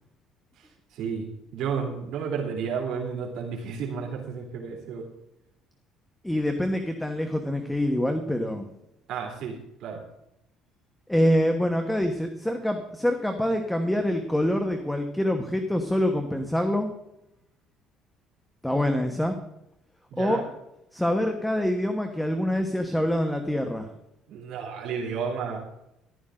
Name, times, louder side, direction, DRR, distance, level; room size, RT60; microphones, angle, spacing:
voice 1, 0.6-5.0 9.1-10.0 20.1-20.4 24.3-25.6, right 6 dB, 65° right, -1 dB, 3.1 m, -32 dB
voice 2, 6.2-8.7 11.1-16.9 18.6-19.4 20.2-20.4 20.9-23.9, equal, 5° left, 5 dB, 1.1 m, -25 dB
14.0 x 12.0 x 3.8 m, 0.83 s
cardioid pair, 150°, 0 cm